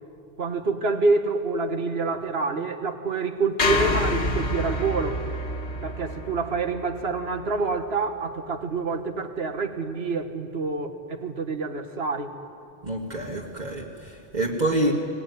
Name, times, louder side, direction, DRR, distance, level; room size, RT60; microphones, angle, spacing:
voice 1, 0.4-5.2 5.8-12.3, right 3 dB, 55° right, 7 dB, 1.6 m, -27 dB
sound 1, 3.6-7.9, left 2 dB, 65° left, 1.9 m, -28 dB
voice 2, 12.8-14.9, right 1 dB, 40° right, -3 dB, 1.9 m, -27 dB
24.5 x 18.5 x 9.4 m, 2.5 s
omnidirectional pair, 1.2 m